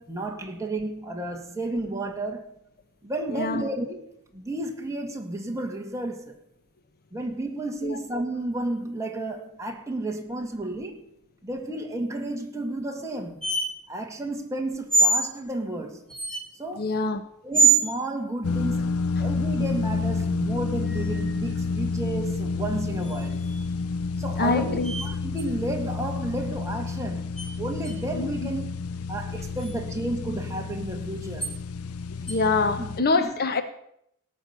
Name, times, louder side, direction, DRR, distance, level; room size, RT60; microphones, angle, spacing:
voice 1, 0.0-2.5 3.0-4.0 4.3-6.4 7.1-11.0 11.4-13.5 13.9-16.0 16.6-16.9 17.4-23.4 24.2-27.3 27.6-28.6 29.1-31.5 32.8-33.3, right 1 dB, 15° right, 2.0 m, -32 dB
voice 2, 3.3-3.7 7.8-8.0 16.8-17.2 24.4-25.0 28.1-28.3 32.1-33.6, left 3 dB, 45° left, 0.9 m, -25 dB
sound 1, 13.4-13.7 14.9-15.3 16.1-16.4 17.5-17.9 20.9-21.4 23.0-23.7 24.8-25.1 25.4-25.5 27.4-27.5 27.8-27.9 29.6-29.8 31.4-31.5 32.3-32.4, right 4 dB, 5° left, 1.9 m, -24 dB
sound 2, 18.4-33.0, left 4 dB, 70° left, 0.5 m, -30 dB
18.0 x 6.3 x 8.3 m
head